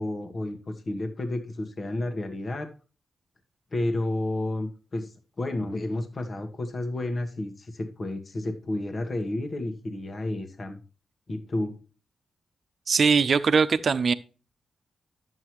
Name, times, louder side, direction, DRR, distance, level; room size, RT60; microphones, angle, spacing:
voice 1, 0.0-2.7 3.7-10.8 11.3-11.8, left 1 dB, 40° left, 1.4 m, -31 dB
voice 2, 12.9-14.1, right 5 dB, 55° right, 0.8 m, -21 dB
11.0 x 7.7 x 3.1 m
cardioid pair, 90°, 0 cm